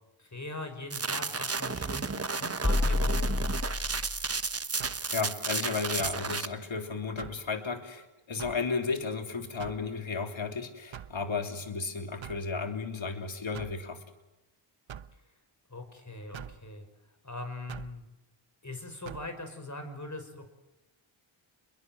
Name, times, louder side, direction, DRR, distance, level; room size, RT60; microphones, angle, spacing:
voice 1, 0.2-3.3 15.7-16.9 17.2-18.1 18.6-20.5, left 2 dB, 35° left, 8 dB, 5.7 m, -41 dB
sound 1, 0.9-6.5, right 4 dB, 30° right, 1.2 m, -33 dB
sound 2, 2.6-4.5, left 2 dB, 15° left, 1.5 m, -29 dB
sound 3, 4.8-5.1 6.0-6.3 7.2-7.5 8.4-8.7 9.6-9.9 10.9-11.2 12.2-12.5 13.5-13.8 14.9-15.1 16.3-16.6 17.7-18.0 19.0-19.3, right 9 dB, 65° right, 1.0 m, -44 dB
voice 2, 5.1-14.0, left 4 dB, 65° left, 5 dB, 3.4 m, -34 dB
29.0 x 22.5 x 7.9 m, 0.99 s
cardioid pair, 60°, 50 cm